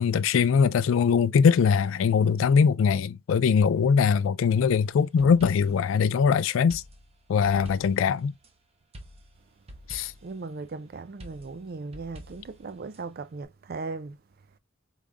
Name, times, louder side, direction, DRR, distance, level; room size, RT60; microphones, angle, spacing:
voice 1, 0.0-6.8 7.3-8.3 9.9-10.1, left 6 dB, 70° left, 0.3 m, -22 dB
sound 1, 4.7-5.9 6.7-8.5 8.9-10.4 11.2-13.0, equal, 30° right, 0.8 m, -47 dB
voice 2, 10.2-14.2, right 3 dB, 45° right, 0.4 m, -37 dB
4.8 x 3.5 x 2.4 m
head